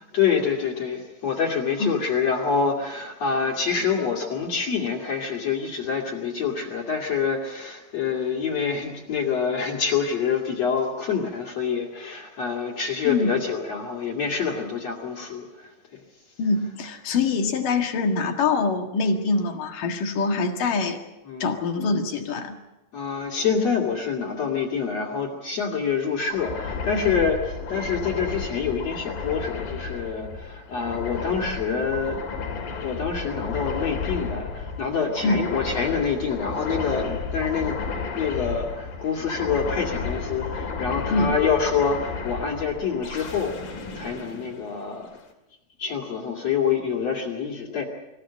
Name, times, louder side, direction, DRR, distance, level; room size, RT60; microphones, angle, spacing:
voice 1, 0.1-16.0 21.3-21.5 22.9-32.2 32.5-37.8 38.1-45.1 45.8-47.8, left 6 dB, 50° left, 0 dB, 3.5 m, -26 dB
voice 2, 13.0-13.4 16.4-21.0 21.4-22.6 35.2-35.5 41.1-41.4, left 4 dB, 70° left, 4 dB, 3.4 m, -24 dB
sound 1, 26.3-45.2, left 5 dB, 90° left, 4.8 m, -33 dB
26.0 x 16.0 x 8.8 m, 1.0 s
omnidirectional pair, 4.0 m